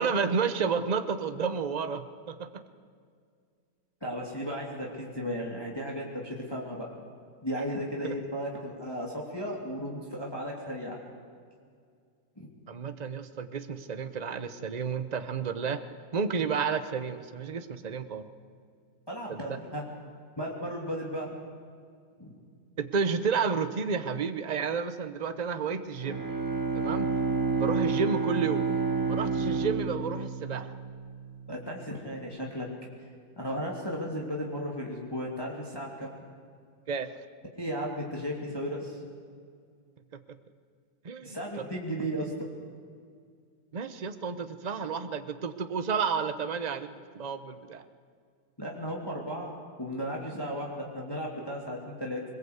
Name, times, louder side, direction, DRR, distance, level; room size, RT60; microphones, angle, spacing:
voice 1, 0.0-2.6 8.0-8.1 12.7-15.8 16.1-18.3 19.3-19.6 22.8-26.3 26.7-27.1 27.6-28.7 29.1-30.7 36.9-37.1 41.0-41.3 41.6-41.7 43.7-47.8, right 5 dB, 35° right, 10 dB, 0.7 m, -31 dB
voice 2, 4.0-6.9 7.4-11.0 12.4-12.5 19.1-19.9 20.4-21.4 22.2-22.3 31.5-32.7 33.4-36.1 37.5-39.0 41.2-42.5 48.6-52.2, equal, 10° left, -2 dB, 2.8 m, -35 dB
Bowed string instrument, 25.9-31.5, right 4 dB, 10° right, 1.4 m, -30 dB
22.5 x 21.0 x 8.1 m, 2.2 s
omnidirectional pair, 2.0 m